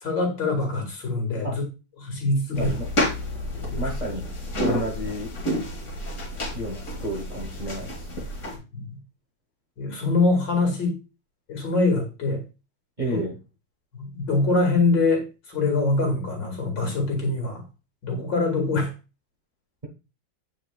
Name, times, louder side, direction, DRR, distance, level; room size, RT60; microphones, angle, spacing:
voice 1, 0.0-1.5 2.0-2.7 3.6-3.9 8.7-9.0 9.8-10.9 11.5-12.4 13.9-17.6 18.0-18.9, left 3 dB, 65° left, 1 dB, 2.5 m, -24 dB
sound 1, 2.5-8.6, equal, 45° left, 2.1 m, -30 dB
voice 2, 2.5-2.9 3.8-4.3 4.6-5.3 6.5-8.1 13.0-13.4, right 1 dB, 30° right, -1 dB, 1.0 m, -31 dB
8.5 x 4.8 x 2.3 m, 0.30 s
omnidirectional pair, 2.1 m